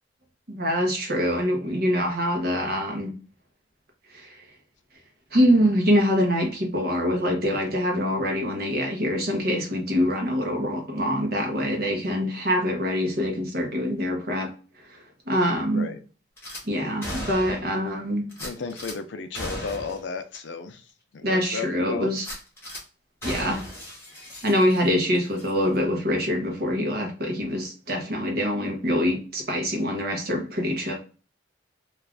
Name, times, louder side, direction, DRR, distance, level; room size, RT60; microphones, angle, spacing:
voice 1, 0.5-3.1 4.1-4.4 5.3-14.5 14.9-15.0 15.3-15.9 16.7-18.2 21.2-22.3 23.2-23.6 24.4-30.9, equal, 55° right, 2 dB, 0.9 m, -24 dB
Gunshot gunfire / Glass, 16.4-16.6 17.0-17.8 18.3-19.0 19.3-20.0 20.3-20.4 20.9-21.0 22.2-22.8 23.2-25.0 25.3-25.5, equal, 15° left, 1.1 m, -36 dB
voice 2, 18.4-20.9 21.1-22.2, left 4 dB, 70° left, 8 dB, 0.5 m, -34 dB
2.5 x 2.4 x 3.3 m, 0.37 s
head